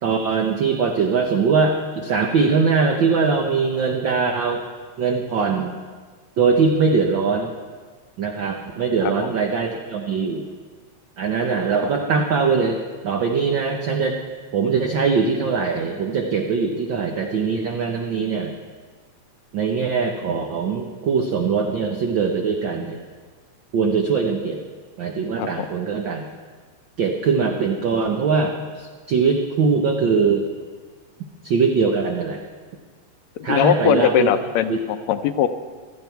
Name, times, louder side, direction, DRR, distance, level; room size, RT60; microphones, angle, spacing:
voice 1, 0.0-4.6 5.0-5.7 6.4-7.5 8.2-10.4 11.2-12.8 13.0-14.2 14.5-18.5 19.5-23.0 23.7-24.6 25.0-26.3 27.0-30.5 31.4-32.4 33.4-34.3 34.7-34.8, right 5 dB, 75° right, 3 dB, 1.1 m, -21 dB
voice 2, 33.5-35.5, left 10 dB, 80° left, 10 dB, 1.8 m, -20 dB
16.5 x 13.0 x 4.6 m, 1.5 s
omnidirectional pair, 3.3 m